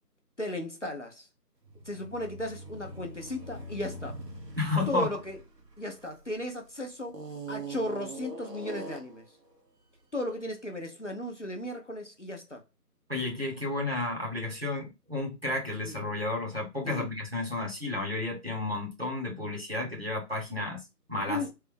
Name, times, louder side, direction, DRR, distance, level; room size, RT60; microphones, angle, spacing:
voice 1, 0.4-1.3 1.9-4.2 4.9-5.4 5.8-7.2 7.5-9.2 10.1-12.6 15.8-16.0 16.8-17.1 21.3-21.5, left 1 dB, 50° left, 0.6 m, -35 dB
sound 1, 1.6-6.5 7.1-9.3, right 2 dB, 80° right, 1.3 m, -42 dB
voice 2, 4.6-5.1 13.1-20.8 21.1-21.5, left 2 dB, 40° right, 1.0 m, -32 dB
3.2 x 2.3 x 3.3 m
figure-of-eight pair, 180°, 47 cm